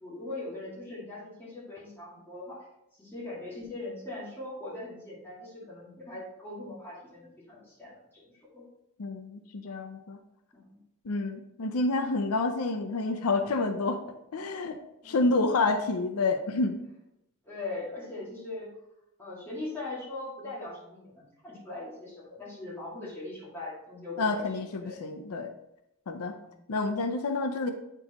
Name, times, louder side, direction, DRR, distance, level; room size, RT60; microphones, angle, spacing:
voice 1, 0.0-2.7 3.0-8.7 10.5-10.8 15.0-15.3 17.4-18.7 19.2-24.4 24.8-25.0 26.5-26.6, left 2 dB, 10° left, -8 dB, 2.1 m, -40 dB
voice 2, 9.0-10.2 11.0-14.0 14.3-14.8 15.0-16.8 24.2-25.5 26.1-26.4 26.7-27.7, left 3 dB, 80° left, 7 dB, 0.5 m, -28 dB
8.7 x 4.6 x 3.0 m, 0.85 s
head